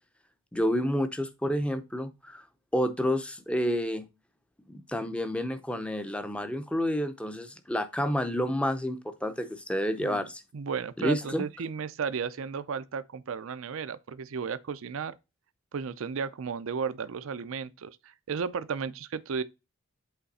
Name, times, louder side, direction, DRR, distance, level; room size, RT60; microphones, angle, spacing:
voice 1, 0.5-2.4 2.7-4.0 4.7-10.4 11.0-11.4, equal, 5° left, 0.6 m, -29 dB
voice 2, 10.5-15.2 15.7-19.4, right 6 dB, 65° right, 0.5 m, -34 dB
8.1 x 3.3 x 4.1 m
head